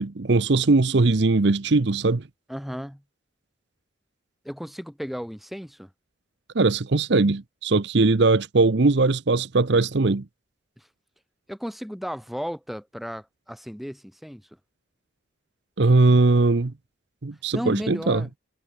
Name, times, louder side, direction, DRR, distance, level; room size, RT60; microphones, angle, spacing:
voice 1, 0.0-2.2 6.5-10.2 15.8-16.7 17.2-18.2, right 3 dB, 60° right, 0.8 m, -20 dB
voice 2, 2.5-3.0 4.4-5.9 10.8-10.9 11.5-14.5 17.5-18.3, equal, ahead, 1.9 m, -34 dB
head